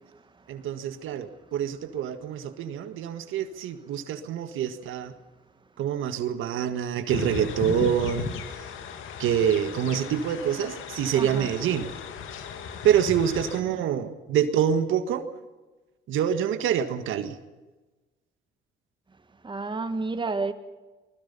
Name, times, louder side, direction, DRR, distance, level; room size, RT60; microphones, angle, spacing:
voice 1, 0.5-5.1 5.8-8.3 9.2-11.9 12.8-15.2 16.1-17.4, right 9 dB, 85° right, 1.8 m, -26 dB
sound 1, 7.1-13.6, left 7 dB, 85° left, 2.4 m, -36 dB
voice 2, 11.1-11.5 19.4-20.5, right 3 dB, 25° right, 1.7 m, -30 dB
24.5 x 20.5 x 5.6 m
cardioid pair, 90°, 20 cm